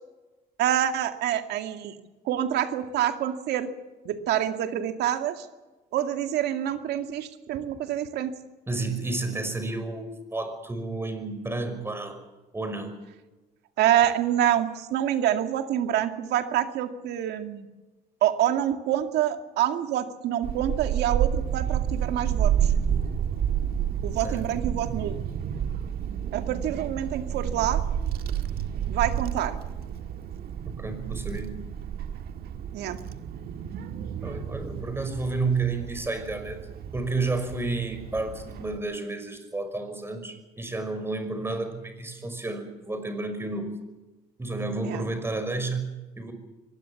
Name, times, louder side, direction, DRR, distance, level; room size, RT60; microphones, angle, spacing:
voice 1, 0.6-2.0 2.2-3.7 4.0-5.5 5.9-8.3 13.8-17.7 18.2-22.7 24.0-25.2 26.3-27.8 28.9-29.6 32.7-33.0 44.8-45.0, right 11 dB, 80° right, 7 dB, 2.2 m, -26 dB
voice 2, 8.7-12.2 12.5-13.0 24.0-24.5 30.7-31.6 34.2-36.6 36.9-43.7 44.4-46.3, right 3 dB, 15° right, 8 dB, 5.6 m, -31 dB
Child speech kid speaking / Wind, 20.4-38.8, right 9 dB, 65° right, 1.8 m, -30 dB
24.0 x 19.5 x 7.2 m, 1.2 s
cardioid pair, 110°, 17 cm